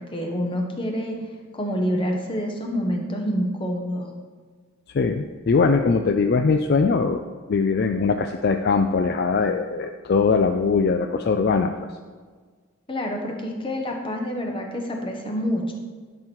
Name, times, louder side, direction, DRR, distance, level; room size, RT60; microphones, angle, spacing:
voice 1, 0.1-1.2 1.5-4.1 12.9-15.7, equal, 25° left, 2 dB, 1.2 m, -27 dB
voice 2, 4.9-7.2 7.5-11.7, left 4 dB, 50° left, 6 dB, 0.4 m, -21 dB
11.0 x 6.2 x 4.5 m, 1.5 s
head